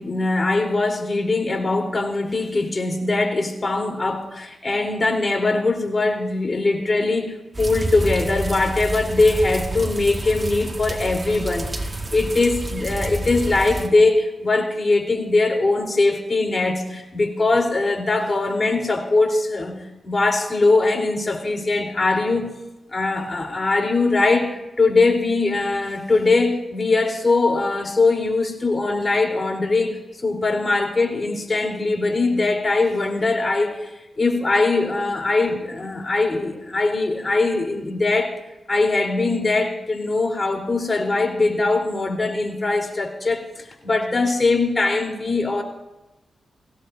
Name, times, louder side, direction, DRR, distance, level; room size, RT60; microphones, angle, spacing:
voice 1, 0.0-22.6 22.9-38.3 38.7-45.6, left 3 dB, 40° left, 2 dB, 3.9 m, -21 dB
sound 1, 7.5-13.9, right 1 dB, 35° right, 1.9 m, -29 dB
22.5 x 17.5 x 2.8 m, 0.99 s
supercardioid pair, 45°, 0 cm